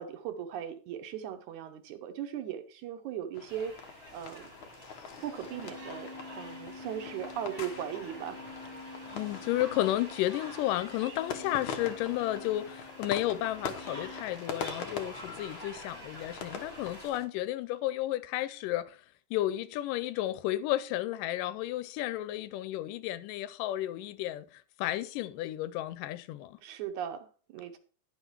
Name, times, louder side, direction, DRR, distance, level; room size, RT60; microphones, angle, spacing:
voice 1, 0.0-4.5 5.2-8.4 26.6-27.8, right 9 dB, 75° right, 2.1 m, -38 dB
sound 1, 3.3-17.3, left 6 dB, 65° left, 1.3 m, -44 dB
sound 2, 3.5-17.1, right 1 dB, 25° right, 1.4 m, -48 dB
sound 3, 5.1-14.2, left 3 dB, 30° left, 0.5 m, -48 dB
voice 2, 9.1-19.0 19.3-26.6, left 14 dB, 85° left, 2.2 m, -32 dB
10.5 x 5.7 x 4.6 m
omnidirectional pair, 3.8 m